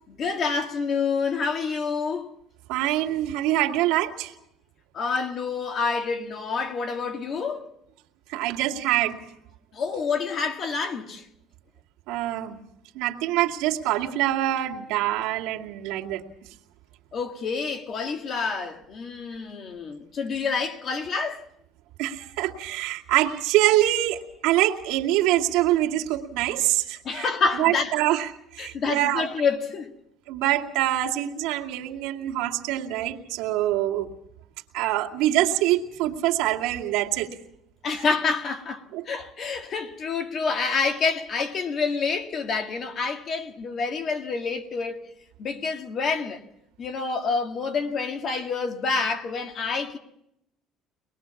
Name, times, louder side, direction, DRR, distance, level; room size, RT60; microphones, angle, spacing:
voice 1, 0.1-2.3 4.9-7.7 9.7-11.3 17.1-21.5 27.0-27.9 28.6-29.9 37.8-45.1 45.4-46.4 46.8-50.0, left 5 dB, 35° left, 1.9 m, -28 dB
voice 2, 2.7-4.3 8.3-9.2 12.1-12.6 12.9-16.2 22.0-27.3 27.6-29.3 30.3-34.1 34.7-37.4 38.9-39.1, right 14 dB, 80° right, 2.3 m, -25 dB
24.5 x 20.5 x 7.1 m
cardioid pair, 170°, 0 cm